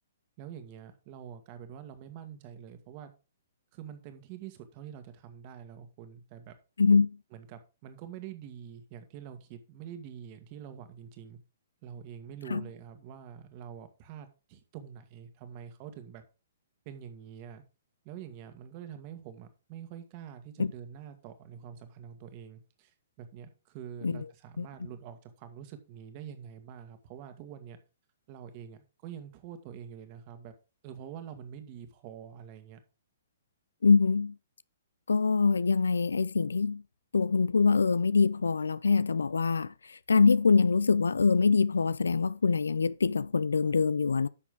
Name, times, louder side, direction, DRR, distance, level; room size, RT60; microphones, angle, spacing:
voice 1, 0.4-3.1 3.7-6.6 7.3-11.4 11.8-16.2 16.9-17.6 18.0-27.8 28.3-30.5 30.8-32.8, right 9 dB, 40° right, 1.8 m, -46 dB
voice 2, 6.8-7.2 12.5-12.6 20.6-20.7 24.0-24.2 24.6-24.7 33.8-34.3 35.1-36.8 37.1-44.3, left 4 dB, 85° left, 0.4 m, -24 dB
10.0 x 6.2 x 3.8 m
hypercardioid pair, 130°, 0 cm